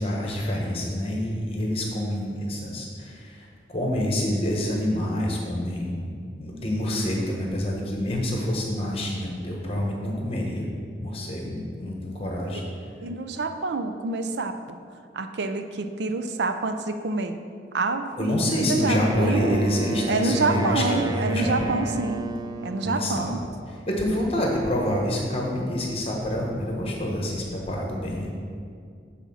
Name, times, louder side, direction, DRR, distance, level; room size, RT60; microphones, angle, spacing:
voice 1, 0.0-6.1 6.4-10.7 11.0-12.6 18.2-21.8 22.8-23.3 23.9-28.3, left 1 dB, 30° left, -1 dB, 1.2 m, -27 dB
voice 2, 13.0-14.8 15.1-17.3 17.7-19.7 20.1-22.3 22.6-23.4, right 3 dB, 75° right, 7 dB, 0.5 m, -27 dB
Wind instrument woodwind instrument, 18.8-23.0, right 1 dB, 20° right, 0.3 m, -32 dB
8.3 x 4.3 x 5.6 m, 2.3 s
head